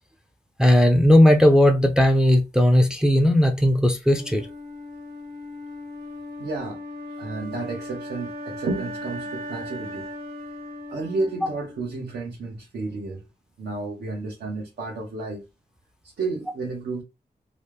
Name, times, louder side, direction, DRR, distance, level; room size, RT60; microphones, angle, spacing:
voice 1, 0.6-4.5, left 1 dB, 5° right, 0.4 m, -17 dB
Wind instrument woodwind instrument, 4.1-12.1, left 1 dB, 60° right, 1.3 m, -38 dB
voice 2, 6.4-6.8 7.2-10.1 10.9-13.2 13.6-15.4 16.2-17.0, right 3 dB, 90° right, 1.2 m, -31 dB
3.2 x 2.4 x 3.2 m
wide cardioid pair, 150°, 17 cm